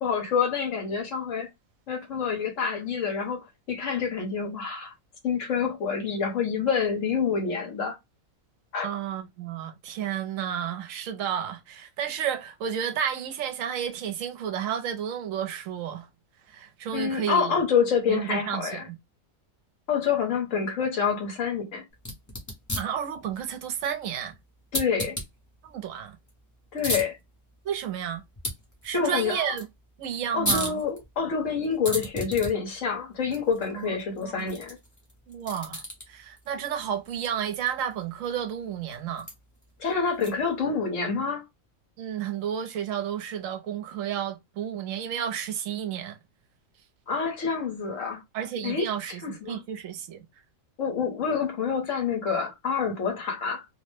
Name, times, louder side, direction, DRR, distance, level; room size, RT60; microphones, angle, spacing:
voice 1, 0.0-1.5 1.9-4.9 5.2-7.9 8.7-8.9 16.9-18.9 19.9-21.8 24.7-25.2 26.7-27.2 28.9-29.6 30.3-34.8 39.8-41.4 47.1-48.2 48.6-48.9 49.2-49.6 50.8-53.6, left 6 dB, 70° left, 1.3 m, -27 dB
voice 2, 8.8-16.1 16.5-17.5 18.1-19.0 22.7-24.3 25.6-26.2 27.6-28.2 28.8-29.7 30.0-30.8 33.7-34.5 35.3-39.3 42.0-46.2 48.3-50.3, right 9 dB, 75° right, 1.0 m, -32 dB
sound 1, 21.9-40.6, left 1 dB, 15° left, 0.7 m, -38 dB
2.9 x 2.0 x 3.2 m
omnidirectional pair, 1.4 m